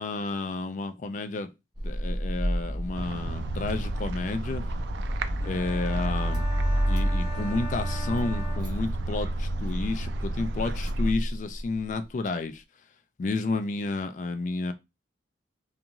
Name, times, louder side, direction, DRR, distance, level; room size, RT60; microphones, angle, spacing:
voice 1, 0.0-1.5 1.8-4.7 5.4-6.4 6.9-12.6 13.2-14.7, left 3 dB, 40° left, 0.3 m, -31 dB
Car / Engine starting, 1.7-11.8, equal, 25° right, 0.7 m, -30 dB
sound 1, 2.9-11.1, right 4 dB, 75° right, 0.3 m, -36 dB
sound 2, 5.4-9.3, left 1 dB, 15° left, 0.7 m, -42 dB
2.4 x 2.4 x 2.9 m
head